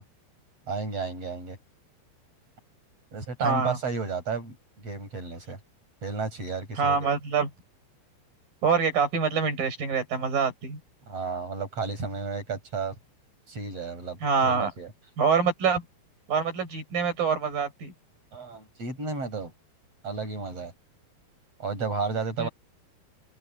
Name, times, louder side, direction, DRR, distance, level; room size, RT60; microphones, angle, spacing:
voice 1, 0.7-1.6 3.1-5.6 6.0-7.1 11.1-13.0 13.5-14.9 18.3-19.5 20.0-20.7 21.6-22.5, right 4 dB, 35° right, 8.9 m, -32 dB
voice 2, 3.4-3.8 6.8-7.5 8.6-10.8 14.2-14.7 15.2-15.8 16.3-17.9 22.4-22.5, right 5 dB, 50° right, 8.1 m, -25 dB
omnidirectional pair, 5.2 m